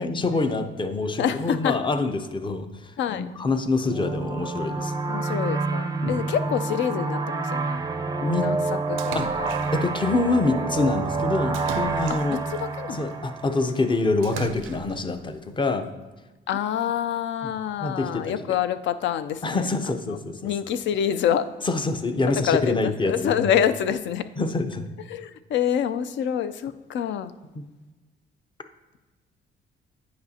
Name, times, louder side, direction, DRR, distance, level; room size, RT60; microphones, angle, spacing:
voice 1, 0.0-4.9 6.0-6.2 8.2-8.5 9.1-9.3 9.7-12.4 12.9-15.9 17.4-17.5 17.8-18.5 19.4-20.5 21.6-23.5 24.4-24.8 27.5-27.6, left 3 dB, 25° left, 8 dB, 0.6 m, -26 dB
voice 2, 1.2-1.8 3.0-3.2 5.1-7.8 8.4-8.6 8.9-9.5 12.3-13.0 16.5-19.7 20.4-21.5 22.5-24.2 25.1-27.3, left 9 dB, 70° left, 13 dB, 0.4 m, -26 dB
sound 1, 3.8-14.2, right 3 dB, 20° right, 0.4 m, -28 dB
Splash splatter, 9.0-10.0 11.5-12.6 14.2-15.1, right 8 dB, 85° right, 0.4 m, -36 dB
9.5 x 5.1 x 2.8 m, 1.2 s
cardioid pair, 90°, 20 cm